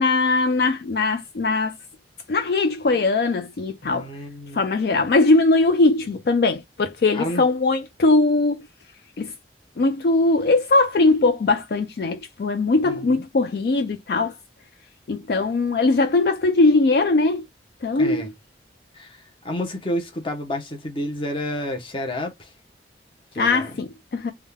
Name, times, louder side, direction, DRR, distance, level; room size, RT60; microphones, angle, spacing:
voice 1, 0.0-1.8 2.3-4.1 4.5-8.7 9.2-9.3 9.8-14.3 15.1-17.4 17.8-18.3 23.4-24.3, left 3 dB, 60° left, 0.4 m, -20 dB
voice 2, 3.8-4.6 7.1-7.4 12.8-13.2 17.9-18.3 18.9-22.5 23.3-23.7, left 1 dB, 30° left, 0.8 m, -30 dB
3.5 x 2.2 x 3.4 m
head